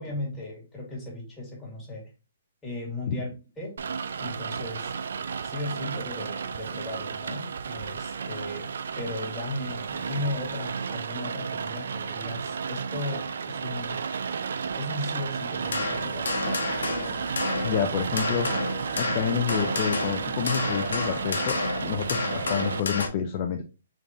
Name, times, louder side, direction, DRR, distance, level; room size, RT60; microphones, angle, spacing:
voice 1, 0.0-2.1 2.6-3.8 4.2-4.9 5.4-8.7 9.0-14.0 14.7-16.3, left 2 dB, 10° left, -4 dB, 1.8 m, -36 dB
Rain, 3.8-22.8, right 6 dB, 75° right, 0.3 m, -33 dB
sound 1, 15.6-23.1, left 3 dB, 85° left, 0.9 m, -30 dB
voice 2, 17.6-18.5 18.9-21.6 21.8-23.6, left 8 dB, 35° left, 5 dB, 0.4 m, -28 dB
3.7 x 3.4 x 2.8 m, 0.31 s
hypercardioid pair, 150°, 0 cm